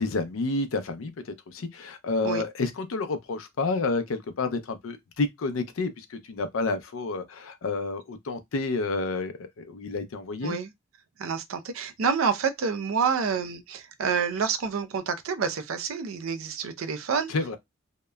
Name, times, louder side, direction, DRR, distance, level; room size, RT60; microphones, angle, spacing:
voice 1, 0.0-10.6 17.3-17.6, left 3 dB, 80° left, 0.5 m, -30 dB
voice 2, 11.2-17.3, right 6 dB, 90° right, 0.5 m, -28 dB
2.8 x 2.1 x 2.2 m
head